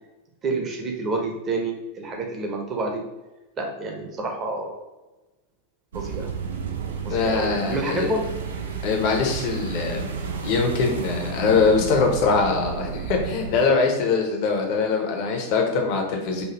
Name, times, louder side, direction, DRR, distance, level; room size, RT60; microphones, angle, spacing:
voice 1, 0.4-3.0 3.6-4.8 5.9-6.3 7.0-8.3, right 2 dB, 30° right, 2 dB, 1.0 m, -28 dB
sound 1, 5.9-13.6, right 5 dB, 65° right, 0.5 m, -32 dB
voice 2, 7.1-8.1 8.8-10.1 10.4-16.4, left 4 dB, 45° left, 2 dB, 1.0 m, -22 dB
5.5 x 2.7 x 3.0 m, 1.1 s
figure-of-eight pair, 90°, 0 cm